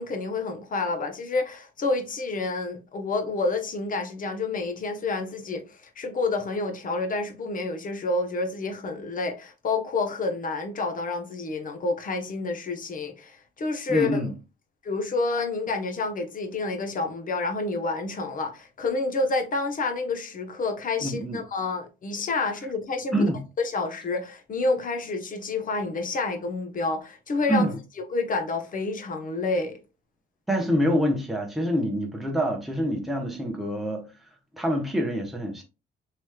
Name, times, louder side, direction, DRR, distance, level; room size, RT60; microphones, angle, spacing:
voice 1, 0.0-14.2 14.8-23.3 23.6-27.7 28.1-29.8, left 3 dB, 45° left, 0.8 m, -29 dB
voice 2, 13.9-14.3 21.0-21.4 23.1-23.4 27.5-27.8 30.5-34.1 34.5-35.6, equal, ahead, 0.8 m, -26 dB
3.2 x 3.0 x 2.3 m
cardioid pair, 90°, 20 cm